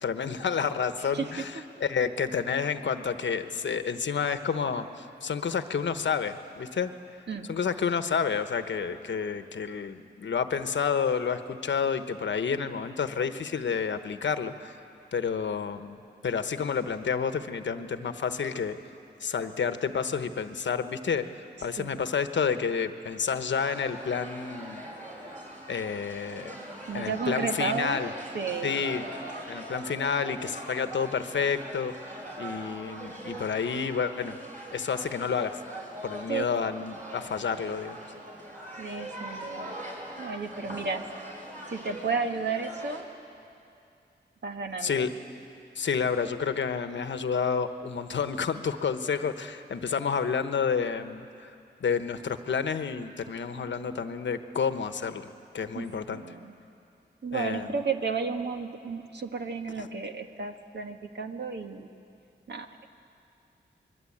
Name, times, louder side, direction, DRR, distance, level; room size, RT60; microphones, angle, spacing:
voice 1, 0.0-1.5 1.8-6.9 7.5-14.8 15.1-18.8 19.2-24.8 25.7-26.5 26.9-28.1 28.6-29.1 29.5-34.4 34.7-35.6 36.0-38.0 44.8-45.1 45.7-51.5 51.8-55.3 55.5-56.2 57.3-57.7, left 6 dB, 85° left, 9 dB, 1.1 m, -30 dB
voice 2, 1.0-1.7 7.3-7.5 21.6-22.1 26.9-28.1 28.3-28.9 36.3-36.5 38.8-39.8 40.2-41.1 41.7-43.1 44.4-45.1 55.7-56.6 57.2-61.9 62.5-62.7, right 5 dB, 70° right, 4 dB, 1.6 m, -33 dB
sound 1, 23.6-43.0, right 1 dB, 45° right, 5.9 m, -42 dB
26.5 x 21.5 x 8.7 m, 2.6 s
cardioid pair, 60°, 19 cm